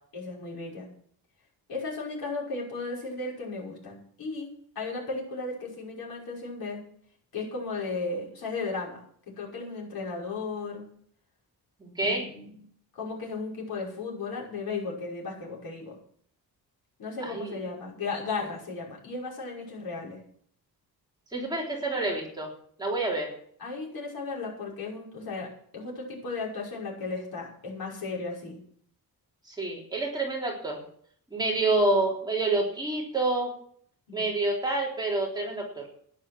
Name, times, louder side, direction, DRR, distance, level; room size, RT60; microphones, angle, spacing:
voice 1, 0.1-0.9 1.7-4.5 4.8-6.8 7.3-9.0 9.3-10.8 12.1-12.5 12.9-16.0 17.0-20.2 23.6-28.6 34.1-34.2, left 3 dB, 65° left, -3 dB, 5.9 m, -35 dB
voice 2, 11.8-12.3 17.2-17.6 21.3-22.5 22.8-23.3 29.5-30.8 31.3-33.5 34.1-35.8, right 2 dB, 10° right, -3 dB, 3.5 m, -28 dB
12.5 x 11.0 x 6.2 m, 0.62 s
wide cardioid pair, 170°, 38 cm